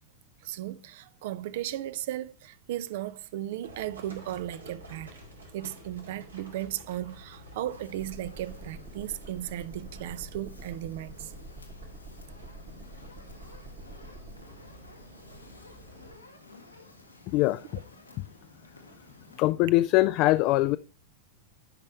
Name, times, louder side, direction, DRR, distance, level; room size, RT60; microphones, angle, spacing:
voice 1, 0.4-5.1 5.5-11.3, right 13 dB, 55° right, 0.5 m, -36 dB
Livestock farm animals working animals, 3.6-16.1, equal, 80° right, 2.5 m, -50 dB
Fire, 7.7-19.5, left 2 dB, 85° left, 1.4 m, -54 dB
sound 1, 8.0-14.4, right 2 dB, 35° right, 1.4 m, -47 dB
voice 2, 17.3-17.6 19.4-20.8, left 18 dB, 40° left, 0.3 m, -22 dB
9.9 x 5.4 x 4.4 m
figure-of-eight pair, 90°, 0 cm